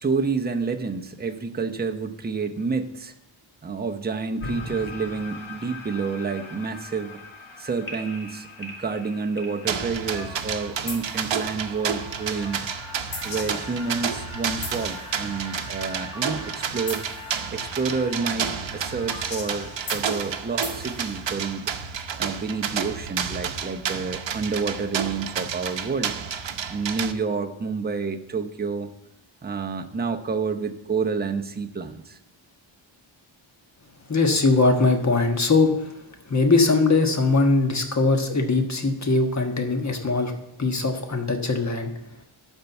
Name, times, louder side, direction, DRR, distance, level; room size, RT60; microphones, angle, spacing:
voice 1, 0.0-3.1 3.6-7.2 7.6-12.7 13.2-17.0 17.5-21.7 22.2-26.1 26.7-28.9 29.4-32.2, right 4 dB, 20° right, 5 dB, 0.7 m, -29 dB
sound 1, 4.4-22.1, left 2 dB, 85° left, 2.3 m, -40 dB
sound 2, 9.7-27.1, right 7 dB, 65° right, 0.8 m, -30 dB
voice 2, 34.1-35.9 36.2-40.3 40.6-41.9, left 3 dB, 35° left, 4 dB, 1.4 m, -21 dB
12.5 x 4.5 x 8.1 m, 0.91 s
wide cardioid pair, 165°, 48 cm